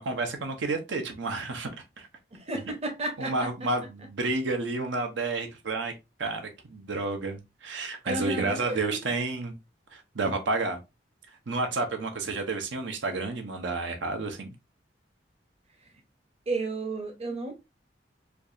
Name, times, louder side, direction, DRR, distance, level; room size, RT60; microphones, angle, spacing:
voice 1, 0.0-1.7 2.0-2.1 3.2-5.9 6.2-9.5 9.9-10.8 11.5-14.5, right 3 dB, 85° right, 0.7 m, -30 dB
voice 2, 2.3-3.5 8.0-9.0 16.5-17.5, right 2 dB, 35° right, 0.7 m, -32 dB
4.5 x 2.4 x 2.5 m
head